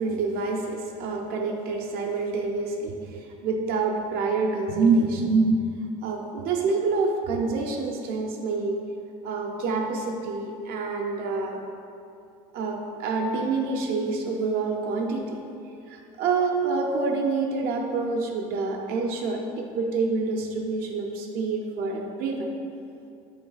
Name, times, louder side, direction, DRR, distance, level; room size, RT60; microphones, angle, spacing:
voice 1, 0.0-5.6 6.0-8.8 9.2-11.6 12.5-15.4 15.9-22.5, right 4 dB, 60° right, 1 dB, 0.6 m, -27 dB
3.7 x 3.2 x 3.9 m, 2.5 s
supercardioid pair, 90°, 17 cm